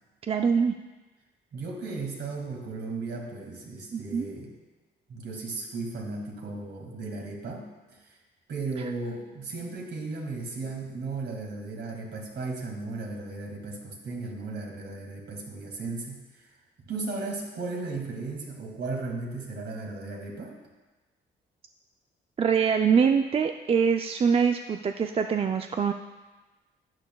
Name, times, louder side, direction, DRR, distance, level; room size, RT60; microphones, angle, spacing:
voice 1, 0.2-0.8 3.9-4.3 22.4-25.9, right 6 dB, 30° right, 6 dB, 0.4 m, -24 dB
voice 2, 1.5-4.6 5.1-8.2 8.5-16.5 16.9-20.6, right 3 dB, 60° right, 0 dB, 2.0 m, -36 dB
12.0 x 8.8 x 2.3 m, 1.2 s
cardioid pair, 90°, 20 cm